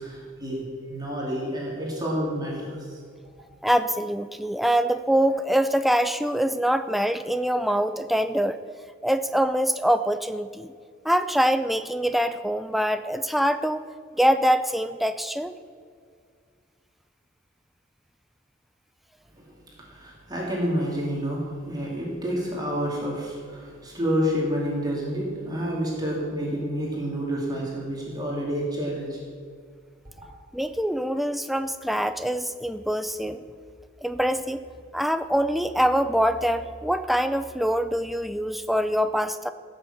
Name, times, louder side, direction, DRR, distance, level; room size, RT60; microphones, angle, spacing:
voice 1, 0.0-3.0 19.4-19.6 19.8-29.2 30.2-30.3, equal, 20° right, -3 dB, 2.5 m, -29 dB
voice 2, 3.6-8.6 9.0-10.7 11.0-13.8 14.2-15.5 30.5-33.4 34.0-34.6 34.9-39.5, equal, ahead, 10 dB, 0.4 m, -24 dB
16.5 x 6.5 x 7.1 m, 2.1 s
head